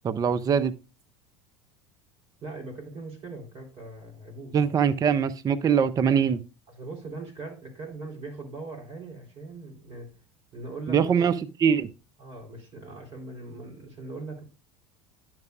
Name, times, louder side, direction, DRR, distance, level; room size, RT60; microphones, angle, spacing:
voice 1, 0.0-0.7 4.5-6.4 10.9-11.3 11.6-11.9, right 7 dB, 25° right, 14 dB, 0.5 m, -22 dB
voice 2, 2.4-4.5 6.7-10.1 10.5-11.3 12.2-14.4, right 3 dB, 40° right, 0 dB, 3.7 m, -40 dB
10.5 x 5.9 x 2.4 m, 0.31 s
figure-of-eight pair, 75°, 15 cm